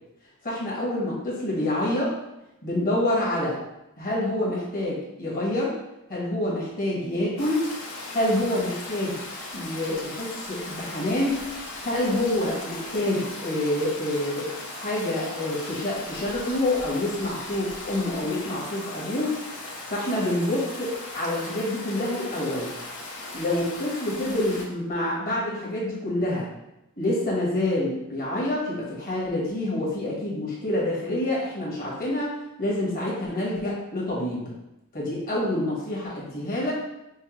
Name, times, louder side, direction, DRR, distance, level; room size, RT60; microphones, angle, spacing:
voice 1, 0.4-2.1 2.6-3.6 4.0-5.8 6.1-7.7 8.1-9.2 9.5-14.5 14.8-19.3 19.9-22.7 23.3-26.5 27.0-32.3 32.6-34.5 34.9-36.7, left 1 dB, 40° left, -5 dB, 1.2 m, -27 dB
Stream, 7.4-24.6, left 2 dB, 75° left, 0.8 m, -38 dB
5.4 x 2.1 x 2.9 m, 0.89 s
head